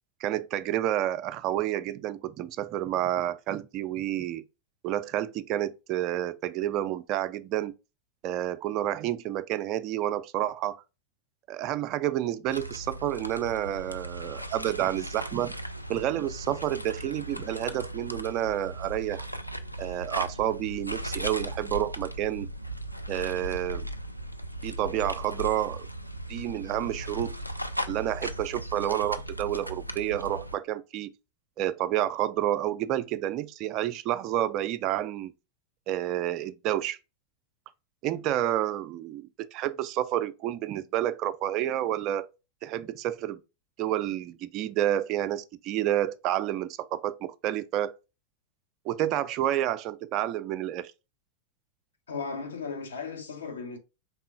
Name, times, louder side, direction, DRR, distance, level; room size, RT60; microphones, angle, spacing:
voice 1, 0.2-4.4 4.8-7.7 8.2-10.8 11.5-15.5 15.9-19.3 19.8-22.5 23.1-23.9 24.6-25.9 26.3-27.4 27.9-31.1 31.6-35.3 35.9-37.0 38.0-42.3 42.6-43.4 43.8-48.0 48.9-50.9, right 12 dB, 40° right, 0.4 m, -29 dB
sound 1, 12.5-30.6, right 1 dB, 90° left, 0.4 m, -37 dB
voice 2, 52.1-53.8, left 4 dB, 70° left, 0.9 m, -36 dB
4.7 x 3.6 x 2.3 m
figure-of-eight pair, 90°, 0 cm